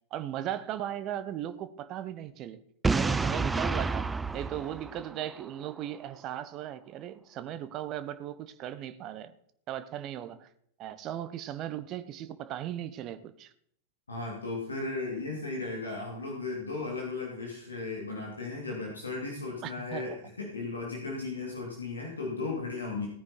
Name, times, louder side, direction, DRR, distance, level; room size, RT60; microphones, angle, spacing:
voice 1, 0.1-2.6 2.9-9.3 9.7-10.5 10.8-13.5 19.6-20.2, right 11 dB, 35° right, 1.0 m, -37 dB
Boom, 2.8-5.7, right 4 dB, 10° right, 0.5 m, -29 dB
voice 2, 14.1-23.1, left 3 dB, 75° left, 3.0 m, -36 dB
17.5 x 9.7 x 4.3 m
figure-of-eight pair, 90°, 0 cm